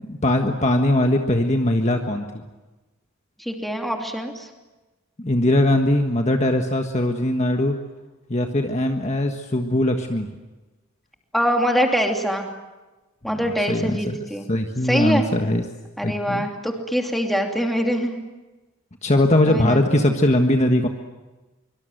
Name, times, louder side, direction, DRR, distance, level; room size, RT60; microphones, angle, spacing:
voice 1, 0.1-2.4 5.2-7.7 8.3-10.3 13.3-13.4 13.7-14.0 14.5-15.6 16.0-16.4 19.0-20.9, left 1 dB, 30° left, 4 dB, 1.5 m, -20 dB
voice 2, 3.4-4.5 11.3-12.5 13.2-14.5 14.8-15.2 16.0-18.2 19.4-19.8, equal, ahead, 2 dB, 2.8 m, -23 dB
24.5 x 24.5 x 9.2 m, 1.1 s
head